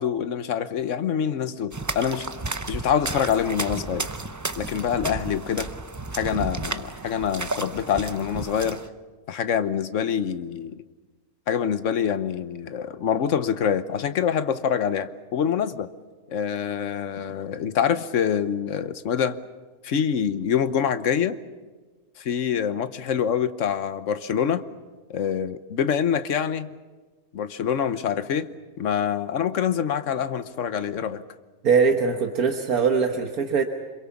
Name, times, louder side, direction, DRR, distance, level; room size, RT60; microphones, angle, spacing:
voice 1, 0.0-2.3 2.7-4.1 4.6-5.7 6.1-8.8 9.3-10.8 11.5-15.9 16.3-19.4 19.8-21.4 22.2-24.6 25.1-26.7 27.3-28.5 28.8-31.2, left 8 dB, 60° left, 12 dB, 1.2 m, -25 dB
sound 1, 1.7-8.9, right 3 dB, 30° right, 0.3 m, -33 dB
voice 2, 31.6-33.6, right 5 dB, 80° right, 4 dB, 1.7 m, -21 dB
26.5 x 23.0 x 7.1 m, 1.3 s
omnidirectional pair, 1.6 m